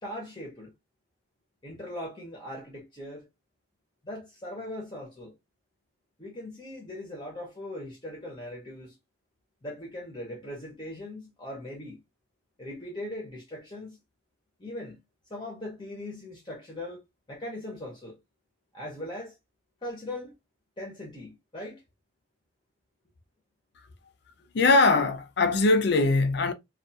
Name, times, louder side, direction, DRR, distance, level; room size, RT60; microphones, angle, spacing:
voice 1, 0.0-0.7 1.6-3.3 4.0-5.3 6.2-9.0 9.6-12.0 12.6-14.0 14.6-15.0 15.3-17.0 17.3-18.2 18.7-19.4 19.8-20.3 20.8-21.8, left 1 dB, 20° left, 0.7 m, -39 dB
voice 2, 24.5-26.5, left 3 dB, 55° left, 0.4 m, -21 dB
2.3 x 2.3 x 2.6 m
head